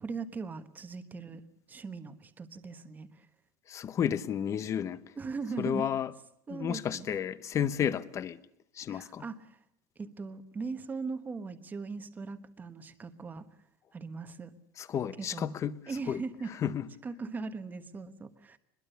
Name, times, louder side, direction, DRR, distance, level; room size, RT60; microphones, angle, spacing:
voice 1, 0.0-1.4 1.7-3.3 5.2-5.9 6.5-7.1 8.9-9.6 10.0-13.4 13.9-14.5 15.2-15.6 15.9-16.5 17.0-18.6, right 4 dB, 15° right, 1.3 m, -39 dB
voice 2, 3.7-5.0 5.6-6.1 6.5-8.4 8.7-9.3 14.8-15.8 16.1-16.2 16.6-16.9, left 9 dB, 25° left, 0.9 m, -32 dB
23.5 x 21.5 x 6.8 m
cardioid pair, 165°, 12 cm